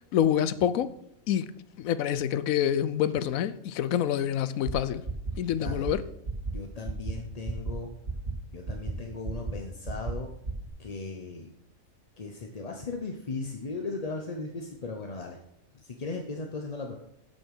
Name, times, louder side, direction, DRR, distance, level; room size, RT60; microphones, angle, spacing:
voice 1, 0.1-0.9 1.3-1.5 1.8-5.0 5.4-6.0, left 10 dB, 80° left, 1.0 m, -26 dB
sound 1, 4.6-4.7 5.0-5.3 5.6-5.9 6.2-6.5 6.8-7.1 7.4-7.7 8.0-8.3 8.6-8.9 9.2-9.5 9.8-10.1 10.4-10.7, right 4 dB, 60° right, 2.7 m, -32 dB
voice 2, 5.5-6.0 6.5-7.9 8.5-10.3 10.8-11.5 12.2-15.4 15.7-16.9, left 3 dB, 35° left, 0.7 m, -37 dB
8.9 x 6.3 x 6.4 m
omnidirectional pair, 1.4 m